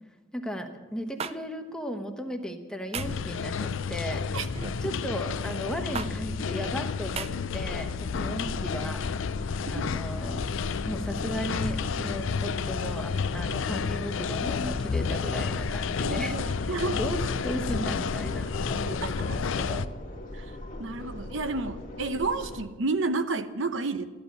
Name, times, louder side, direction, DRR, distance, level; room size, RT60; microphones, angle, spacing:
voice 1, 0.3-4.4 4.8-9.1 9.7-10.4 10.8-16.4 16.7-19.9, equal, 5° left, 4 dB, 1.1 m, -36 dB
sound 1, 1.2-1.4 2.9-3.2 4.5-4.8 6.0-6.1 7.2-7.3, right 6 dB, 30° right, 0.4 m, -34 dB
sound 2, 3.0-19.9, left 5 dB, 75° left, 0.5 m, -31 dB
sound 3, 7.9-22.7, left 1 dB, 40° left, 1.6 m, -41 dB
voice 2, 16.0-17.0 18.9-19.4 20.3-20.5 20.8-24.0, right 3 dB, 70° right, 11 dB, 0.8 m, -31 dB
14.0 x 11.5 x 6.8 m, 1.3 s
head